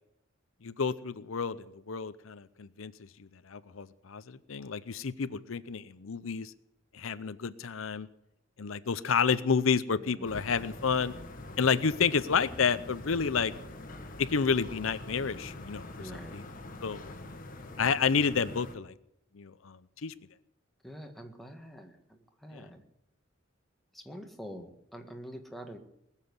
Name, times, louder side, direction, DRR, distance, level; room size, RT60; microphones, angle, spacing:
voice 1, 0.6-6.5 6.9-8.1 8.6-11.1 11.6-13.5 14.2-16.4 16.8-17.1 17.8-18.9 19.3-20.1 22.5-22.7, left 6 dB, 85° left, 14 dB, 0.7 m, -30 dB
voice 2, 10.0-10.4 16.0-16.4 20.8-22.8 23.9-25.8, equal, ahead, 3 dB, 1.7 m, -46 dB
sound 1, 10.2-18.7, left 2 dB, 45° left, 1.5 m, -44 dB
20.0 x 7.4 x 9.7 m, 0.80 s
head